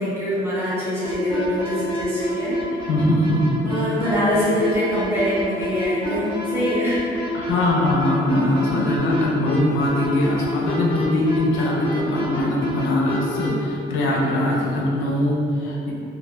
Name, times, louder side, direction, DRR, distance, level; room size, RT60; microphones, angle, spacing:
voice 1, 0.0-2.6 3.6-7.0, equal, 10° right, -12 dB, 1.3 m, -23 dB
sound 1, 1.0-13.5, equal, 25° left, 0.8 m, -28 dB
voice 2, 2.9-3.4 7.3-15.9, left 1 dB, 85° left, -3 dB, 0.5 m, -21 dB
2.3 x 2.1 x 2.9 m, 2.5 s
cardioid pair, 90°, 20 cm